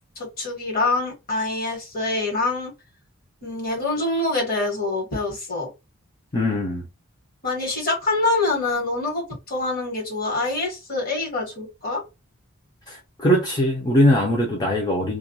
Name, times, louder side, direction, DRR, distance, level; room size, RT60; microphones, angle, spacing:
voice 1, 0.2-2.7 3.4-5.7 7.4-12.0, left 2 dB, 45° left, 1.3 m, -25 dB
voice 2, 6.3-6.9 12.9-15.2, equal, 20° left, 0.5 m, -21 dB
2.4 x 2.1 x 2.6 m
head